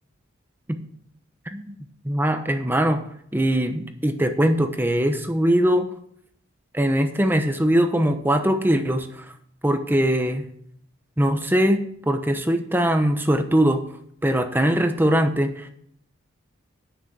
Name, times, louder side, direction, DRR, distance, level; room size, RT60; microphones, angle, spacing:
voice 1, 2.0-3.0 3.3-5.9 6.7-9.2 9.6-10.4 11.2-13.8 14.2-15.7, equal, 10° right, 7 dB, 0.9 m, -21 dB
10.5 x 6.0 x 7.4 m, 0.67 s
head